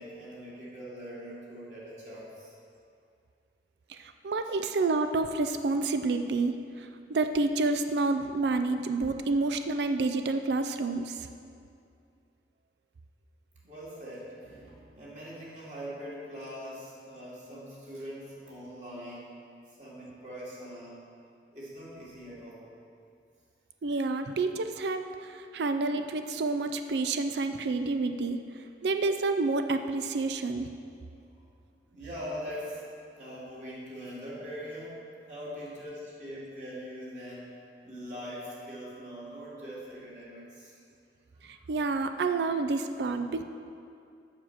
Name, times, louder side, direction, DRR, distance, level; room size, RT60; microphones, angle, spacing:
voice 1, 0.0-2.5 13.6-19.4 19.8-21.0 21.5-22.7 31.9-32.9 33.1-35.0 35.3-37.5 37.8-40.8 41.4-41.6, equal, 40° right, -7 dB, 2.1 m, -42 dB
voice 2, 3.9-11.3 23.8-30.7 41.4-43.4, right 3 dB, 75° right, 8 dB, 0.4 m, -29 dB
7.3 x 5.7 x 7.5 m, 2.4 s
head